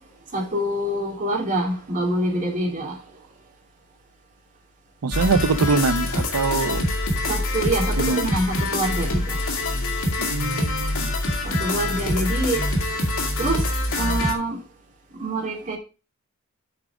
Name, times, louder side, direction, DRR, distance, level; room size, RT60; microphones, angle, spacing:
voice 1, 0.3-2.9 7.3-9.4 11.4-12.6 13.4-13.7 14.0-14.6 15.2-15.8, right 1 dB, 35° right, 2.8 m, -25 dB
voice 2, 5.0-6.8 8.0-8.3 10.2-11.1, right 4 dB, 90° right, 0.6 m, -23 dB
sound 1, 5.1-14.3, left 1 dB, 70° left, 2.3 m, -25 dB
8.6 x 5.0 x 5.9 m
head